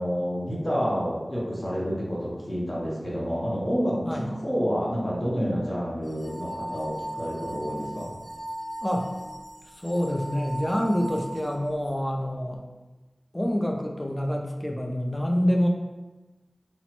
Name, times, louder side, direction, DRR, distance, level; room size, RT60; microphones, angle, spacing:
voice 1, 0.0-8.1, equal, 35° left, -6 dB, 0.8 m, -29 dB
sound 1, 6.1-11.9, right 1 dB, 75° left, 0.6 m, -38 dB
voice 2, 9.7-12.6 13.3-15.7, equal, 15° left, 2 dB, 0.4 m, -26 dB
2.9 x 2.1 x 2.9 m, 1.1 s
wide cardioid pair, 55°, 0 cm